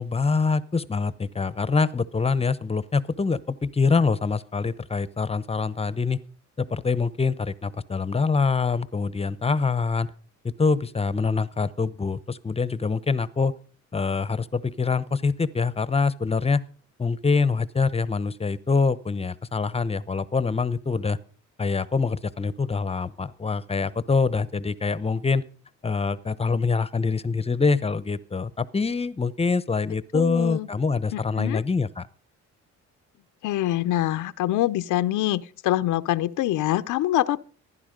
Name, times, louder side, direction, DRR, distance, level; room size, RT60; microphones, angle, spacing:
voice 1, 0.0-6.2 6.6-10.1 10.4-13.5 13.9-16.6 17.0-21.2 21.6-25.4 25.8-32.1, left 4 dB, 20° left, 0.8 m, -25 dB
voice 2, 30.1-30.7 31.1-31.6 33.4-37.4, left 14 dB, 85° left, 0.7 m, -25 dB
15.5 x 11.0 x 5.2 m
cardioid pair, 90°, 30 cm